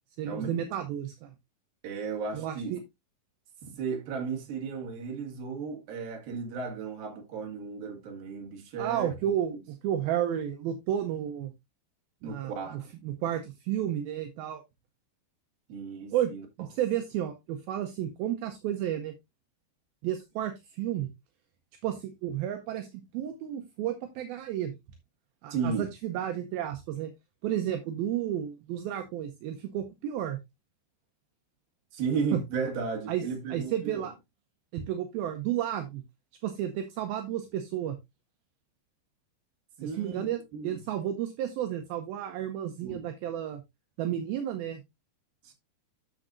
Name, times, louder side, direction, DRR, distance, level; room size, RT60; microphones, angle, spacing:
voice 1, 0.2-1.3 2.3-2.8 8.8-11.5 12.2-14.6 16.1-16.3 16.6-19.1 20.0-21.1 21.8-24.7 25.4-27.1 27.4-30.4 33.1-33.2 33.5-34.1 34.7-36.0 36.4-38.0 39.8-43.6 44.0-44.8, right 11 dB, 75° right, 2.2 m, -32 dB
voice 2, 1.8-2.8 3.6-9.1 12.2-12.9 15.7-16.4 25.5-25.9 31.9-34.1 39.8-40.3 40.5-40.8 42.8-43.1 45.4-45.5, right 5 dB, 60° right, 3.5 m, -34 dB
9.9 x 7.1 x 2.6 m
omnidirectional pair, 5.2 m